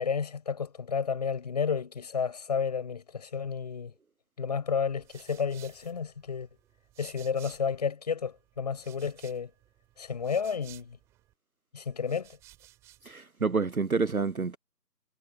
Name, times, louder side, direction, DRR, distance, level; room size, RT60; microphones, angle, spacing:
voice 1, 0.0-3.9 4.4-6.5 7.0-9.5 10.0-11.0 11.7-12.4, left 6 dB, 25° left, 7.4 m, -31 dB
sound 1, 4.7-7.9 8.2-11.3 11.9-13.1, right 16 dB, 5° right, 7.9 m, -56 dB
voice 2, 13.1-14.6, right 4 dB, 60° right, 0.8 m, -28 dB
figure-of-eight pair, 165°, 50 cm